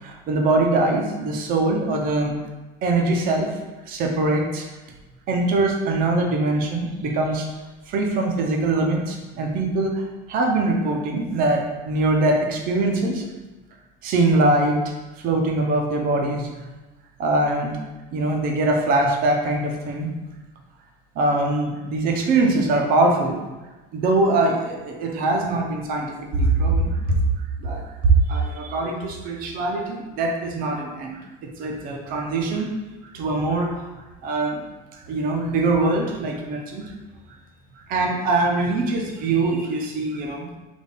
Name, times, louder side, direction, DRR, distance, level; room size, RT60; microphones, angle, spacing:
voice 1, 0.0-2.4 2.8-3.5 3.9-4.6 5.3-7.5 7.9-10.0 10.3-13.2 14.0-14.8 15.2-16.7 17.2-17.7 18.1-20.1 21.1-23.4 23.9-27.1 27.6-32.7 33.1-33.9 34.2-34.6 34.9-36.9 37.8-40.5, right 2 dB, 50° right, 1 dB, 0.8 m, -22 dB
4.1 x 2.6 x 3.6 m, 1.1 s
supercardioid pair, 125°, 19 cm